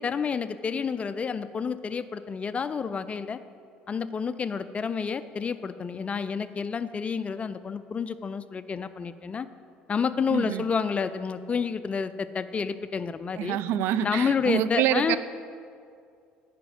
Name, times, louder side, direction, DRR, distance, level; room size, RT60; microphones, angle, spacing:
voice 1, 0.0-3.4 3.9-9.5 9.9-13.6 14.0-15.2, left 6 dB, 30° left, 13 dB, 0.4 m, -29 dB
voice 2, 10.3-10.6 13.4-15.2, right 10 dB, 70° right, 13 dB, 0.4 m, -26 dB
10.0 x 5.1 x 5.1 m, 2.3 s
supercardioid pair, 80°, 4 cm